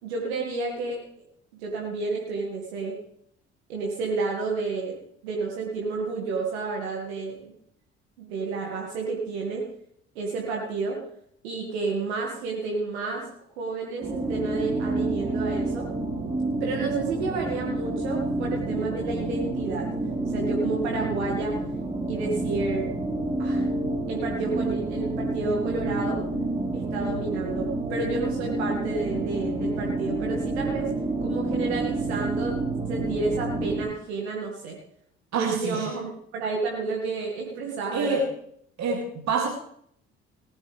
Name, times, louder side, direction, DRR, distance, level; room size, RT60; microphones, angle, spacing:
voice 1, 0.0-1.0 1.6-3.0 3.7-5.0 5.2-7.5 8.2-9.6 10.2-11.0 11.4-15.9 16.6-19.9 20.3-21.6 22.1-22.9 23.4-23.6 24.1-26.2 26.7-30.9 31.2-32.6 32.9-34.8 35.3-38.2, right 4 dB, 80° right, -1 dB, 2.4 m, -30 dB
sound 1, 14.0-33.8, right 2 dB, 15° right, 3.9 m, -29 dB
voice 2, 35.3-35.9 37.9-38.2 38.8-39.5, right 4 dB, 55° right, 0 dB, 3.1 m, -26 dB
19.0 x 11.5 x 3.6 m, 0.66 s
hypercardioid pair, 50°, 32 cm